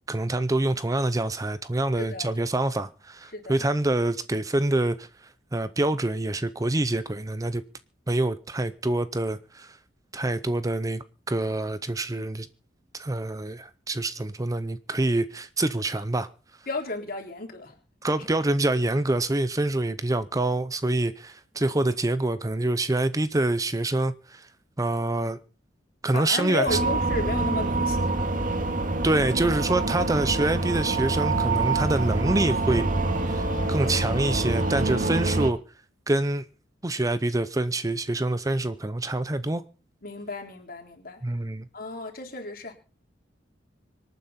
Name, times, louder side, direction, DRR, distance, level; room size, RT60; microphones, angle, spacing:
voice 1, 0.1-7.6 8.1-9.8 10.1-12.5 12.9-16.3 18.0-24.5 24.8-25.4 26.0-26.8 29.0-32.8 33.3-35.6 36.1-36.4 36.8-39.6 41.2-41.7, right 2 dB, 20° right, 0.6 m, -26 dB
voice 2, 2.0-2.3 3.3-3.6 16.7-17.8 18.1-18.2 26.1-28.6 40.0-41.2 41.7-42.7, left 2 dB, 55° left, 3.5 m, -33 dB
sound 1, 26.7-35.5, right 2 dB, 50° right, 2.1 m, -26 dB
25.5 x 9.4 x 4.2 m
head